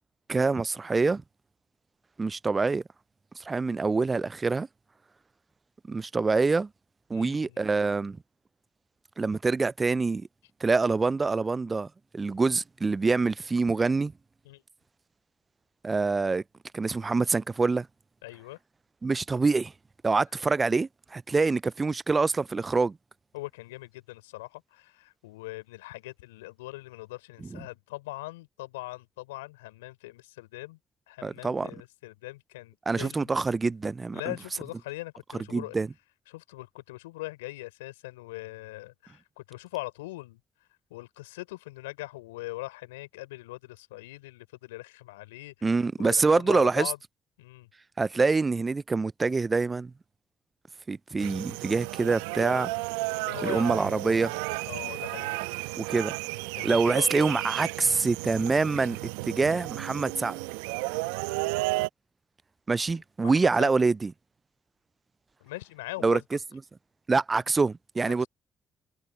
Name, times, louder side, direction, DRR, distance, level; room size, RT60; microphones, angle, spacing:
voice 1, 0.3-1.2 2.2-2.8 3.4-4.7 5.9-6.7 7.1-8.2 9.2-10.3 10.6-11.9 12.1-14.1 15.8-16.4 16.7-17.9 19.0-19.7 20.0-23.0 31.2-31.7 32.9-34.3 35.5-35.9 45.6-46.9 48.0-49.9 50.9-52.7 53.4-54.3 55.8-56.1 56.6-59.0 59.3-60.4 62.7-64.1 66.0-66.2 67.1-68.3, right 4 dB, 30° right, 0.4 m, -25 dB
voice 2, 7.1-7.7 14.5-14.6 18.2-18.6 23.3-30.8 31.1-33.4 34.1-35.8 36.3-40.4 40.9-45.7 46.0-47.0 47.4-47.7 53.2-54.0 54.7-55.4 56.5-57.3 62.9-63.0 63.2-63.7 65.4-66.2 68.1-68.3, left 20 dB, 85° left, 3.9 m, -41 dB
sound 1, 51.2-61.9, right 24 dB, 80° right, 0.9 m, -33 dB
hypercardioid pair, 45°, 0 cm